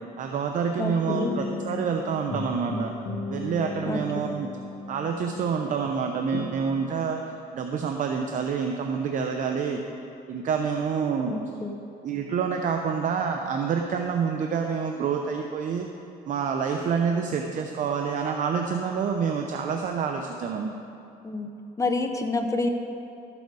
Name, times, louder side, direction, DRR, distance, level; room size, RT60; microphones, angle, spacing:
voice 1, 0.2-2.9 3.3-4.5 4.9-7.2 7.5-9.8 10.3-11.4 12.0-15.9 16.3-20.7, right 6 dB, 50° right, 4 dB, 0.7 m, -27 dB
voice 2, 0.8-1.3 3.9-4.4 11.3-11.8 21.2-21.5 21.8-22.7, left 3 dB, 20° left, 5 dB, 0.9 m, -29 dB
sound 1, 1.1-2.0 2.3-5.9 6.3-6.6, left 2 dB, 50° left, 1.6 m, -34 dB
12.5 x 7.0 x 4.7 m, 2.8 s
cardioid pair, 110°, 17 cm